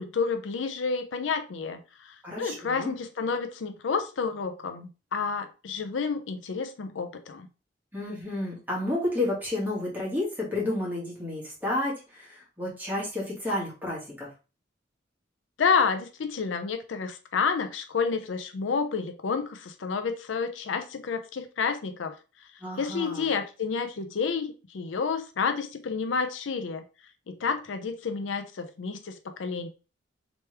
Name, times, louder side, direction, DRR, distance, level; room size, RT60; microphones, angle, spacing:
voice 1, 0.0-7.5 15.6-22.2 22.8-26.8 27.3-29.7, left 5 dB, 80° left, 0.5 m, -30 dB
voice 2, 2.2-2.9 7.9-14.3 22.6-23.3, left 1 dB, 10° right, 1.6 m, -31 dB
3.3 x 3.0 x 3.2 m
head